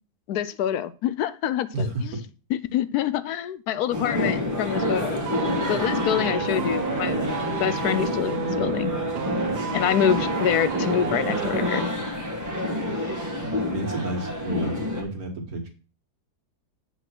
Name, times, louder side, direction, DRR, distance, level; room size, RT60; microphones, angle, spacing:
voice 1, 0.3-1.9 2.5-5.2 5.7-7.2 7.6-8.9 9.7-11.9, left 10 dB, 75° left, 14 dB, 1.1 m, -26 dB
voice 2, 1.7-2.0 13.4-15.7, right 2 dB, 65° right, 4 dB, 2.1 m, -31 dB
sound 1, 3.9-15.0, left 1 dB, 10° right, 1.6 m, -28 dB
sound 2, 5.3-11.9 12.2-12.4, right 7 dB, 80° right, 1.5 m, -31 dB
8.2 x 4.1 x 6.1 m, 0.35 s
omnidirectional pair, 1.7 m